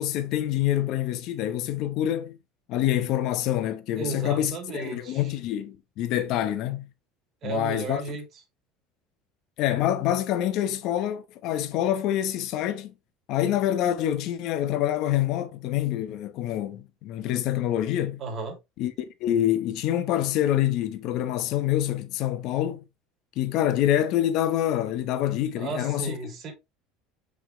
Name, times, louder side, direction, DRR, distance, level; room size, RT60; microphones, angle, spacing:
voice 1, 0.0-2.4 2.7-6.9 7.4-8.2 9.6-12.9 13.3-18.2 18.8-18.9 19.2-22.8 23.4-26.1, left 12 dB, 60° left, 1.1 m, -26 dB
voice 2, 4.0-5.3 7.4-8.2 18.2-18.6 25.6-26.5, right 4 dB, 45° right, 2.5 m, -34 dB
6.1 x 4.9 x 3.1 m
supercardioid pair, 120°, 0 cm